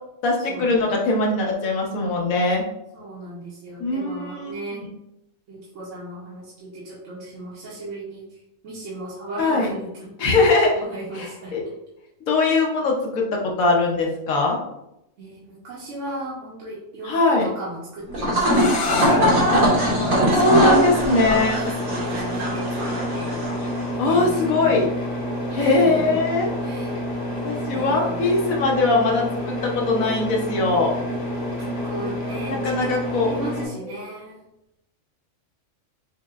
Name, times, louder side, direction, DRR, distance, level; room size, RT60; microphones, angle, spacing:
voice 1, 0.2-2.6 3.8-4.5 9.4-9.7 10.2-10.8 11.2-11.6 12.3-14.6 17.0-17.5 19.5-19.6 20.4-21.6 24.0-24.9 25.5-26.5 27.4-30.9 32.5-33.3, left 3 dB, 90° left, 0 dB, 1.2 m, -21 dB
voice 2, 2.9-4.8 5.5-10.1 10.7-11.5 15.2-20.3 20.8-23.4 24.0-24.8 25.6-26.1 26.6-26.9 27.2-28.2 31.6-32.8 33.1-34.4, right 1 dB, 70° right, -6 dB, 1.1 m, -36 dB
sound 1, 18.1-23.9, equal, 85° right, 1.7 m, -21 dB
sound 2, 18.5-24.2, left 4 dB, 60° left, 0.6 m, -34 dB
sound 3, 19.0-33.7, equal, 40° left, 1.2 m, -29 dB
6.3 x 2.1 x 2.3 m, 0.84 s
omnidirectional pair, 1.4 m